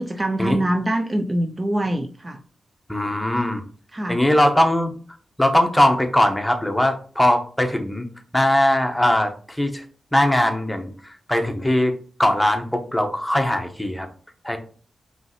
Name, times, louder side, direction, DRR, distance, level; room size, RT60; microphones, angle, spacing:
voice 1, 0.0-2.4 3.9-4.2, right 1 dB, 25° right, 5 dB, 0.4 m, -24 dB
voice 2, 2.9-3.6 4.1-4.9 5.4-8.1 8.3-9.8 10.1-11.9 12.2-14.1 14.4-14.6, left 1 dB, 10° left, 5 dB, 0.9 m, -20 dB
5.3 x 3.2 x 3.0 m, 0.42 s
cardioid pair, 75°, 0 cm